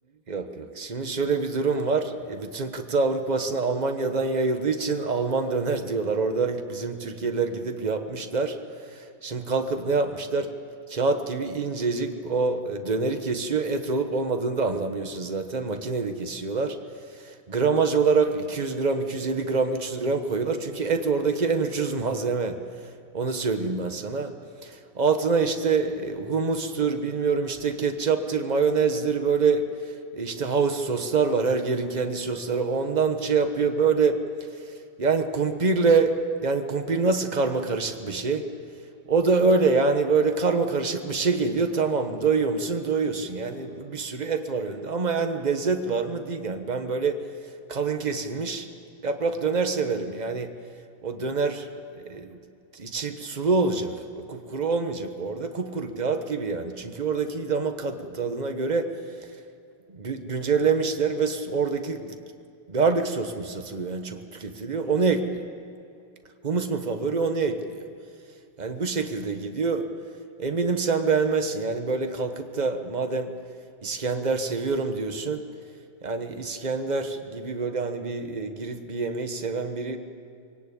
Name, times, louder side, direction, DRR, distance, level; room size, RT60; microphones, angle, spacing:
voice 1, 0.3-10.5 10.9-16.7 17.1-22.6 22.8-24.3 24.6-34.2 34.5-38.4 39.1-47.2 47.7-48.7 49.0-50.5 51.0-51.7 52.0-52.4 52.7-58.9 59.2-59.3 59.9-62.1 62.7-65.5 66.4-67.9 68.6-69.9 70.4-73.3 73.8-75.4 76.0-80.0, right 4 dB, 30° right, 6 dB, 0.9 m, -26 dB
23.0 x 18.0 x 8.6 m, 2.4 s
omnidirectional pair, 2.4 m